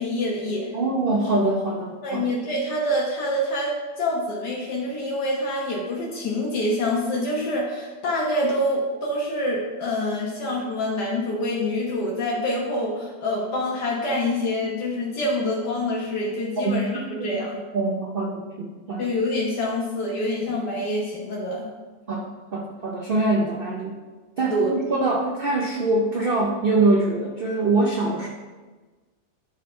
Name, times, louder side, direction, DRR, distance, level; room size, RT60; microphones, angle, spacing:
voice 1, 0.0-0.7 2.0-17.6 19.0-21.7 24.5-24.7, left 1 dB, 75° left, -4 dB, 1.7 m, -26 dB
voice 2, 0.7-2.3 16.6-17.4 17.7-19.1 22.1-22.3 22.5-23.9 24.4-28.3, right 2 dB, 50° right, -1 dB, 0.7 m, -24 dB
10.5 x 3.8 x 4.3 m, 1.3 s
omnidirectional pair, 1.8 m